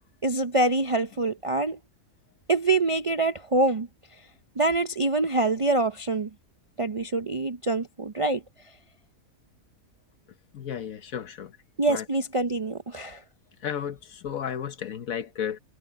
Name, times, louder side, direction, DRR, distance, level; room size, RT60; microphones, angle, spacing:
voice 1, 0.2-1.8 2.5-3.9 4.6-6.3 6.8-8.4 11.8-13.2, right 2 dB, 45° right, 0.4 m, -25 dB
voice 2, 10.5-11.6 11.9-12.0 13.6-15.6, left 8 dB, 75° left, 1.5 m, -33 dB
omnidirectional pair, 1.5 m